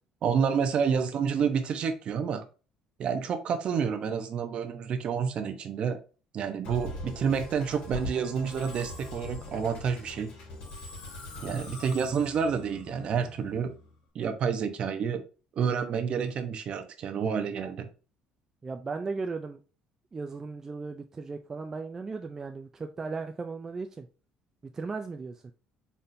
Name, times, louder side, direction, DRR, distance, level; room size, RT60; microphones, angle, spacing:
voice 1, 0.2-2.5 3.0-6.0 6.3-10.3 11.4-13.7 14.1-15.2 15.6-17.9, right 6 dB, 45° right, 0.7 m, -29 dB
Musical instrument, 6.6-14.0, left 1 dB, 75° left, 2.1 m, -42 dB
voice 2, 11.8-12.1 18.6-19.6 20.1-24.1 24.7-25.5, right 4 dB, 20° right, 0.3 m, -37 dB
4.1 x 3.6 x 2.5 m
cardioid pair, 130°, 2 cm